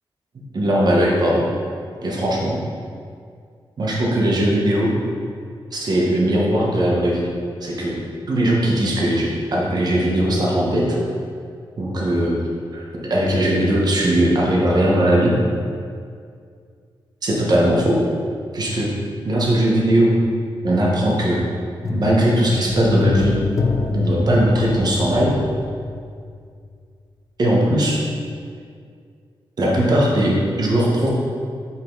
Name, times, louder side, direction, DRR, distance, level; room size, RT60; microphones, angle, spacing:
voice 1, 0.5-1.4 2.0-2.6 3.8-4.9 5.7-7.3 7.6-8.0 8.3-11.0 11.8-12.4 12.7-15.3 17.2-18.0 18.5-18.9 19.2-20.2 20.6-21.4 21.9-23.4 23.9-25.3 27.4-28.0 29.6-31.1, right 1 dB, 45° right, -3 dB, 1.2 m, -19 dB
sound 1, 21.8-26.3 26.6-26.7, left 4 dB, 35° left, 0.4 m, -25 dB
5.6 x 5.2 x 3.9 m, 2.2 s
wide cardioid pair, 120°, 9 cm